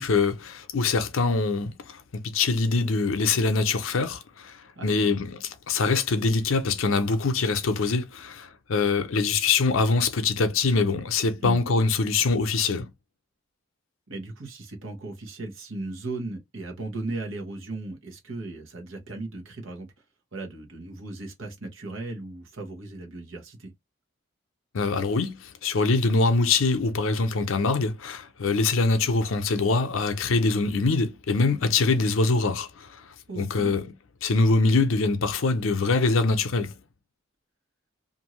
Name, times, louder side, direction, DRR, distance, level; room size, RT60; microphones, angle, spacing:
voice 1, 0.0-2.0 2.3-5.4 5.7-12.9 24.7-32.9 33.4-33.9 34.2-36.7, left 3 dB, 85° left, 0.6 m, -24 dB
voice 2, 4.8-5.2 11.4-11.6 14.1-19.9 20.3-23.7 33.3-33.8, right 2 dB, 80° right, 1.0 m, -36 dB
2.6 x 2.6 x 3.0 m
head